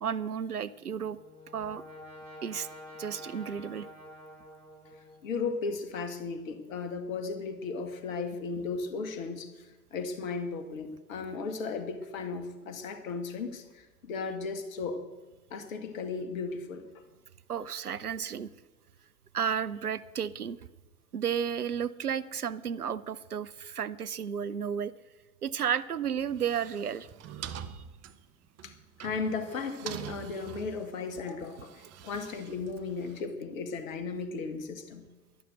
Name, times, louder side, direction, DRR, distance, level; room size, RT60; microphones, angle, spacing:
voice 1, 0.0-1.2 1.5-1.8 2.4-2.7 3.0-3.9 17.5-18.5 19.3-20.6 21.1-24.9 25.4-27.1 27.5-27.8, right 8 dB, 90° right, 17 dB, 0.6 m, -33 dB
Brass instrument, 0.7-5.5, left 1 dB, 70° right, 5.6 m, -49 dB
voice 2, 5.2-15.0 15.5-16.8 28.6-28.7 29.0-35.1, left 4 dB, 65° left, 8 dB, 2.0 m, -36 dB
sound 1, 26.2-33.2, right 9 dB, 35° right, 1.1 m, -45 dB
11.5 x 11.5 x 7.9 m, 1.2 s
figure-of-eight pair, 80°, 44 cm